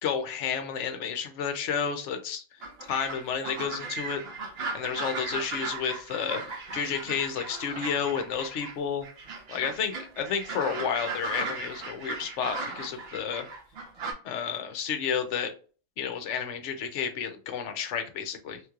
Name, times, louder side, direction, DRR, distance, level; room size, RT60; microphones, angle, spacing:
voice 1, 0.0-2.4 2.9-4.2 4.7-9.1 9.5-13.5 14.2-15.5 16.0-18.6, left 7 dB, 65° left, 7 dB, 0.9 m, -31 dB
sound 1, 2.6-8.8 9.0-14.1, right 3 dB, 50° right, 0.9 m, -37 dB
3.1 x 3.0 x 2.3 m, 0.38 s
omnidirectional pair, 1.5 m